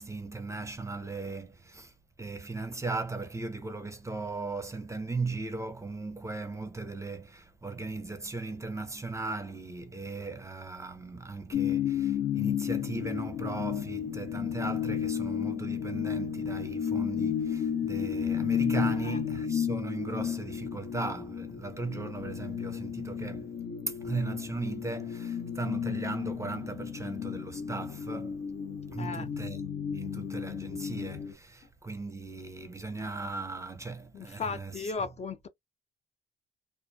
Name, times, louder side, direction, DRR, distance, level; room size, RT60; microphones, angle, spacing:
voice 1, 0.0-1.9 2.2-23.5 23.9-28.4 28.9-35.2, right 3 dB, 15° right, 0.5 m, -37 dB
sound 1, 11.5-31.3, left 8 dB, 70° left, 0.9 m, -33 dB
voice 2, 34.1-35.5, left 5 dB, 35° left, 0.4 m, -36 dB
2.4 x 2.1 x 2.5 m
cardioid pair, 90°, 20 cm